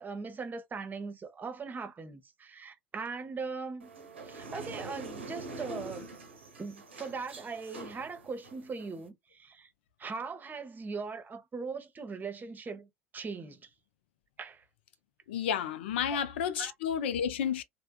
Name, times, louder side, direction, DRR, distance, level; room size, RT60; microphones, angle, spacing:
voice 1, 0.0-3.9 4.2-6.1 6.6-9.7 10.0-13.7 14.4-14.6 16.1-16.2 16.6-16.7, right 4 dB, 30° right, 0.9 m, -40 dB
sound 1, 3.8-9.1, right 2 dB, 85° right, 0.7 m, -45 dB
voice 2, 15.3-17.6, left 8 dB, 75° left, 0.4 m, -31 dB
3.4 x 2.1 x 2.4 m
figure-of-eight pair, 65°, 6 cm